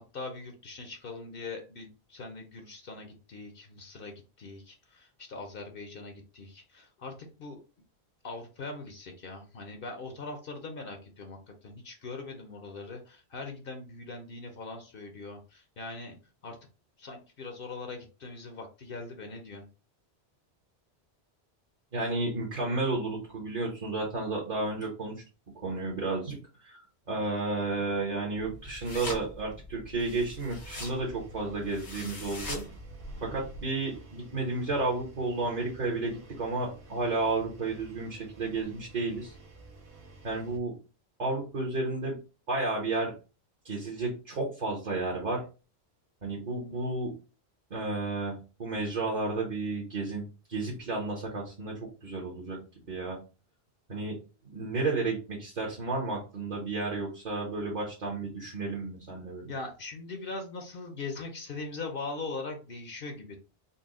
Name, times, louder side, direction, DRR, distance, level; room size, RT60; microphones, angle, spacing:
voice 1, 0.1-7.6 8.2-16.2 16.4-16.6 17.0-19.7 59.5-63.4, left 3 dB, 60° left, 4 dB, 0.9 m, -41 dB
voice 2, 21.9-25.1 25.6-26.4 26.6-26.8 27.1-32.6 33.2-39.3 40.2-40.7 41.2-42.2 42.5-43.1 43.6-45.4 46.2-47.1 47.7-51.7 52.0-52.6 52.9-53.2 53.9-54.1 54.5-59.5, right 3 dB, 45° right, -2 dB, 1.0 m, -32 dB
sound 1, 28.4-33.6, left 1 dB, 90° left, 1.7 m, -42 dB
Engine, 30.6-40.6, right 2 dB, 80° right, 1.5 m, -52 dB
4.0 x 2.2 x 3.6 m, 0.33 s
omnidirectional pair, 1.1 m